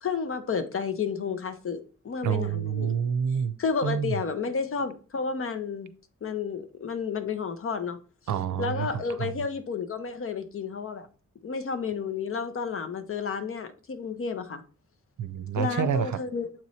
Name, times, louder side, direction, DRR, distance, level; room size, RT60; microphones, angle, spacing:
voice 1, 0.0-2.9 3.6-5.9 6.2-8.0 8.6-11.1 11.4-14.6 15.6-16.5, left 5 dB, 45° left, 0.7 m, -31 dB
voice 2, 2.2-3.5 3.8-4.2 8.3-8.9 9.2-9.3 15.2-16.2, right 8 dB, 75° right, 0.6 m, -28 dB
7.5 x 3.1 x 4.1 m
wide cardioid pair, 160°, 30 cm